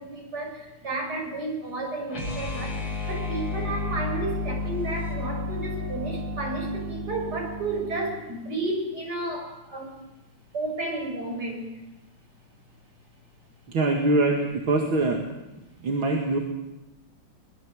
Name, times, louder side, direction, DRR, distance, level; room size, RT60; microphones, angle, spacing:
voice 1, 0.0-9.9 10.5-11.7, right 2 dB, 50° right, 1 dB, 6.9 m, -32 dB
sound 1, 2.1-8.2, left 2 dB, 80° left, 7.0 m, -32 dB
voice 2, 13.7-15.2 15.8-16.4, right 2 dB, 75° right, 1 dB, 2.9 m, -23 dB
24.0 x 21.0 x 7.8 m, 0.97 s
omnidirectional pair, 2.2 m